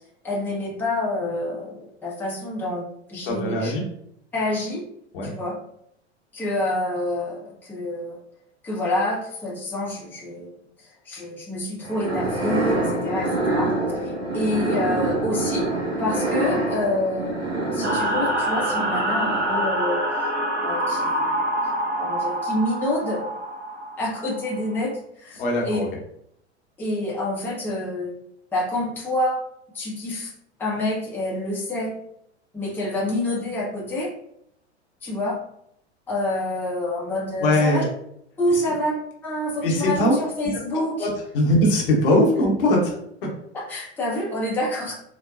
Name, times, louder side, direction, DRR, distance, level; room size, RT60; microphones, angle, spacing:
voice 1, 0.2-3.7 4.3-4.8 5.2-5.6 6.3-8.2 8.6-13.7 14.0-15.7 16.0-20.3 20.6-21.4 22.0-23.3 24.0-25.8 26.8-28.2 28.5-29.4 29.7-30.3 30.6-31.9 32.5-34.1 35.0-35.4 36.1-37.8 38.4-39.0 39.2-41.1 43.5-44.9, left 1 dB, 5° left, -5 dB, 0.7 m, -27 dB
voice 2, 3.2-3.8 5.1-5.3 25.4-25.9 37.4-37.9 38.5-38.6 39.6-40.2 41.0-42.9, left 1 dB, 50° left, -1 dB, 0.9 m, -20 dB
sound 1, 11.8-19.9, right 2 dB, 60° right, 1.3 m, -26 dB
sound 2, 17.8-24.7, right 1 dB, 85° right, 0.8 m, -26 dB
3.9 x 2.1 x 2.4 m, 0.72 s
figure-of-eight pair, 90°, 34 cm